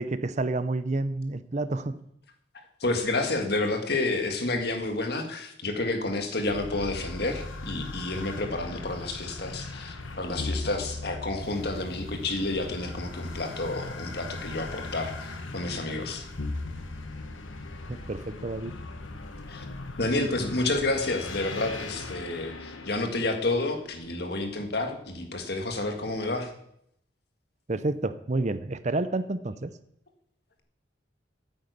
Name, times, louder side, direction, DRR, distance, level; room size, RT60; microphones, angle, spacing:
voice 1, 0.0-2.0 17.9-18.8 27.7-29.7, right 2 dB, 35° right, 13 dB, 0.6 m, -29 dB
voice 2, 2.8-16.2 19.5-19.7 20.0-26.5, left 2 dB, 55° left, 5 dB, 1.8 m, -30 dB
sound 1, 6.5-24.4, left 2 dB, 90° left, 1.1 m, -38 dB
9.3 x 9.2 x 8.2 m, 0.74 s
head